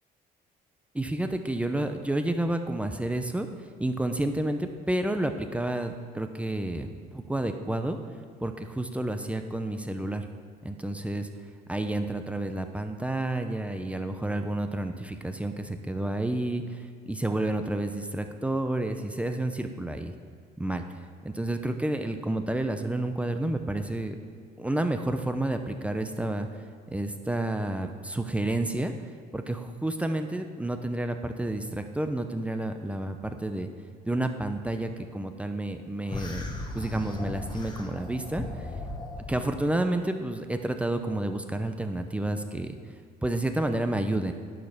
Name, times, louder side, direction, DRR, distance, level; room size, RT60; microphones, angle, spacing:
voice 1, 0.9-3.5 3.8-8.0 8.4-10.3 10.6-11.3 11.7-20.1 20.6-20.8 21.2-24.2 24.6-28.9 29.3-33.7 34.1-36.5 36.7-38.7 39.3-42.8 43.2-44.3, right 1 dB, 5° right, 7 dB, 0.7 m, -30 dB
sound 1, 36.1-39.5, left 2 dB, 25° left, 1.2 m, -37 dB
10.5 x 5.4 x 6.0 m, 2.2 s
cardioid pair, 110°, 17 cm